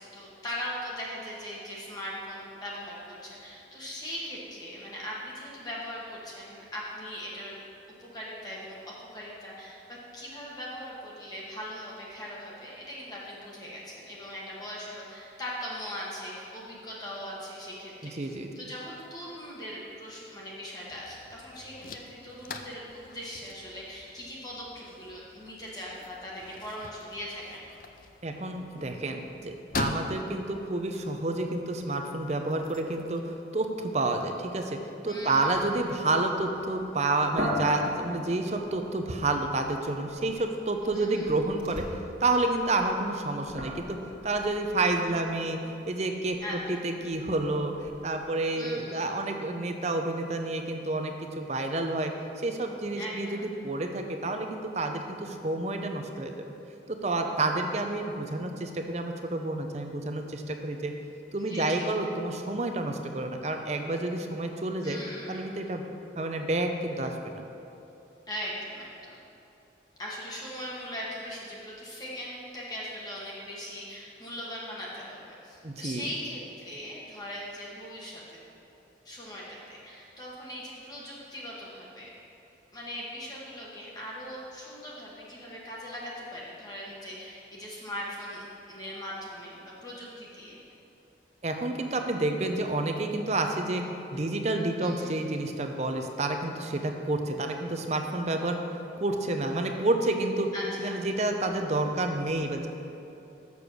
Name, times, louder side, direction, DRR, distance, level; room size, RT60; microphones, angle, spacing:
voice 1, 0.0-7.6 8.0-27.6 35.0-35.5 40.9-41.3 46.4-46.8 48.6-49.1 52.9-53.4 61.4-61.9 64.8-65.5 68.3-69.2 70.0-78.4 79.0-82.1 82.7-90.6 94.8-95.1 100.5-101.0, equal, 20° left, -5 dB, 1.2 m, -40 dB
voice 2, 18.0-18.5 28.2-41.8 42.2-52.1 52.4-56.5 56.9-60.9 61.3-65.0 65.3-65.8 66.2-67.4 75.6-76.0 91.4-93.8 94.1-100.5 100.8-102.7, right 2 dB, 40° right, 5 dB, 0.6 m, -29 dB
sound 1, 20.9-33.2, left 3 dB, 50° left, 0.5 m, -43 dB
sound 2, 35.2-42.0 42.5-48.2, left 1 dB, 55° right, 1.4 m, -40 dB
6.9 x 6.8 x 6.1 m, 2.8 s
head